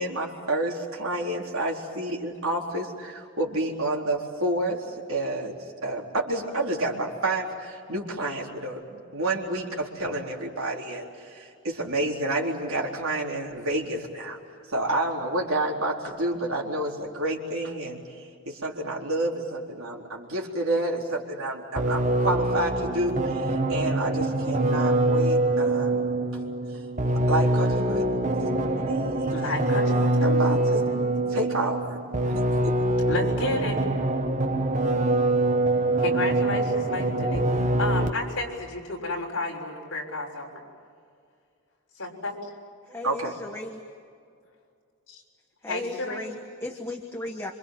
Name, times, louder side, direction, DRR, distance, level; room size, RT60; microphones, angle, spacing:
voice 1, 0.0-5.6 5.8-14.4 14.7-26.1 27.3-29.2 30.2-30.8 31.3-31.8 32.3-32.7 43.0-43.3, right 1 dB, 70° right, 0 dB, 4.1 m, -29 dB
sound 1, 21.8-38.4, right 2 dB, 35° right, 1.2 m, -24 dB
voice 2, 29.2-30.5 33.1-33.8 36.0-40.5 42.0-42.3 45.1-45.2 45.7-46.3, left 2 dB, 60° left, -1 dB, 6.5 m, -31 dB
voice 3, 42.9-43.9 45.6-47.5, left 2 dB, 10° left, 3 dB, 1.3 m, -36 dB
27.0 x 26.0 x 7.7 m, 2.2 s
head